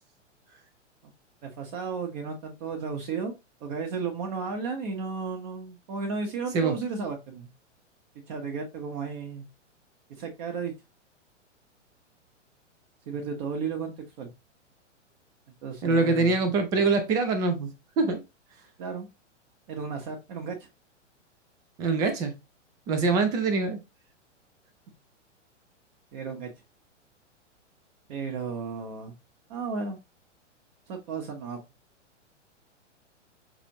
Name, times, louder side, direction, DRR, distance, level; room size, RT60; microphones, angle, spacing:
voice 1, 1.4-3.3 3.6-7.5 8.3-9.4 10.2-10.7 13.1-14.3 15.6-16.4 18.8-19.1 19.7-20.6 23.0-23.2 26.1-26.5 28.1-29.1 29.5-30.0 30.9-31.6, right 5 dB, 35° right, 1.1 m, -34 dB
voice 2, 15.8-17.7 18.0-18.2 21.8-22.3 22.9-23.8, right 3 dB, 10° right, 0.3 m, -24 dB
5.9 x 2.5 x 2.9 m
figure-of-eight pair, 110°, 37 cm